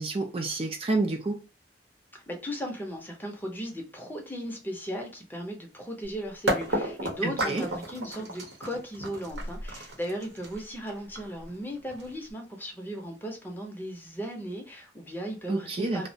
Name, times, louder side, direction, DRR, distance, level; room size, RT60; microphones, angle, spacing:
voice 1, 0.0-1.4 7.2-7.6 15.5-16.1, right 2 dB, 30° right, 0.4 m, -29 dB
voice 2, 2.1-16.1, equal, 10° left, 0.6 m, -36 dB
sound 1, 6.0-6.1 6.5-12.3, right 1 dB, 75° right, 0.8 m, -32 dB
2.3 x 2.0 x 2.7 m
head